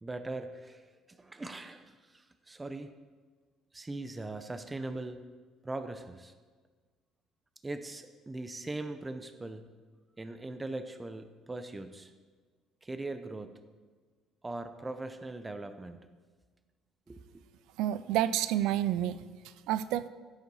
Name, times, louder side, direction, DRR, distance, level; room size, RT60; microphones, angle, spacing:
voice 1, 0.0-0.8 1.1-2.9 3.7-5.2 5.6-6.3 7.6-9.7 10.2-12.1 12.8-13.6 14.4-16.1 17.1-17.4, right 2 dB, 10° right, 9 dB, 0.5 m, -40 dB
voice 2, 17.8-20.1, right 12 dB, 80° right, 14 dB, 0.4 m, -30 dB
15.0 x 8.2 x 4.1 m, 1.4 s
cardioid pair, 160°, 0 cm